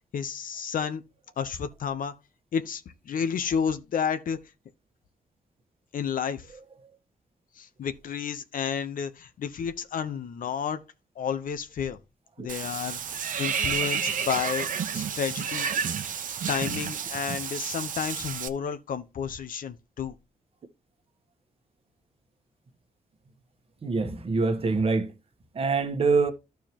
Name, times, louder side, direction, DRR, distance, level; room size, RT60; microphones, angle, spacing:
voice 1, 0.1-1.0 1.4-2.1 2.5-4.4 5.9-6.5 7.6-10.8 11.2-12.0 12.4-14.7 14.9-15.7 16.5-20.1, left 7 dB, 70° left, 0.9 m, -31 dB
Water / Bathtub (filling or washing), 12.5-18.5, right 7 dB, 65° right, 0.9 m, -30 dB
voice 2, 23.8-25.1 25.5-26.3, right 4 dB, 40° right, 1.3 m, -24 dB
14.0 x 4.7 x 3.0 m
wide cardioid pair, 130°, 15 cm